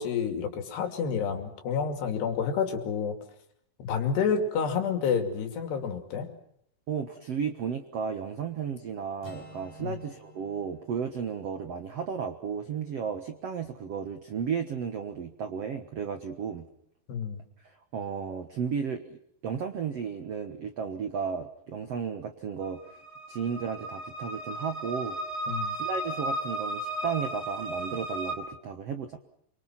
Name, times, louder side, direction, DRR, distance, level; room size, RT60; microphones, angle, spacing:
voice 1, 0.0-3.2 3.9-6.3 9.8-10.0 17.1-17.4 25.5-25.7, left 6 dB, 75° left, 6 dB, 4.6 m, -29 dB
voice 2, 6.9-16.6 17.6-22.8 23.3-25.2 25.7-29.2, right 6 dB, 70° right, 8 dB, 1.5 m, -34 dB
Acoustic guitar, 9.2-13.1, left 1 dB, 50° left, 5.7 m, -52 dB
sound 1, 22.6-28.3, right 1 dB, 25° right, 3.8 m, -34 dB
27.0 x 24.5 x 5.9 m, 0.72 s
omnidirectional pair, 4.8 m